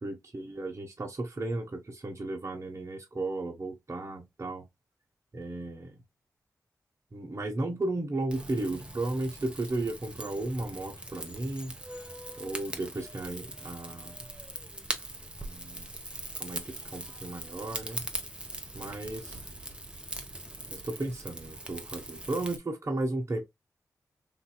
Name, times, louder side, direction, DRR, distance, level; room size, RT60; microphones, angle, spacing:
voice 1, 0.0-4.7 5.3-6.0 7.1-11.7 12.4-14.2 15.4-15.9 16.4-18.0 18.7-19.4 20.7-23.4, right 2 dB, 45° right, 1.1 m, -34 dB
Rain / Fire, 8.3-22.6, right 1 dB, 15° right, 1.0 m, -41 dB
3.8 x 2.8 x 2.2 m
cardioid pair, 45°, 7 cm